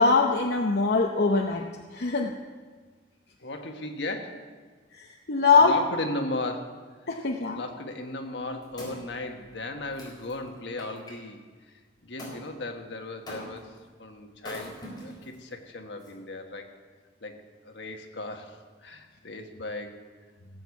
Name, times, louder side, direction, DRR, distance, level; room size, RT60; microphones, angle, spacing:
voice 1, 0.0-2.3 5.0-5.7 7.1-7.6, left 4 dB, 65° left, 2 dB, 0.8 m, -23 dB
voice 2, 3.4-4.5 5.6-6.8 7.5-11.4 12.0-14.8 15.0-16.7 17.2-17.4 17.6-19.9, left 2 dB, 80° left, 4 dB, 1.5 m, -36 dB
Wood, 8.3-11.2 12.2-12.4 13.3-13.8 14.4-15.4 16.0-16.1, equal, 25° left, 4.3 m, -43 dB
17.0 x 8.1 x 7.2 m, 1.4 s
head